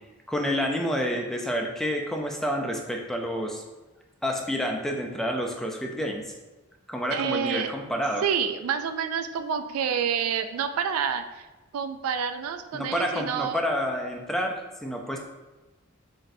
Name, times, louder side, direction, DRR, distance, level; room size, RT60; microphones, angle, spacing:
voice 1, 0.3-3.6 4.2-6.3 6.9-8.2 12.7-15.2, equal, ahead, 1 dB, 0.3 m, -29 dB
voice 2, 7.1-7.7 8.2-11.5 11.7-13.6, right 7 dB, 90° right, 8 dB, 0.3 m, -28 dB
4.1 x 3.2 x 2.6 m, 1.1 s
head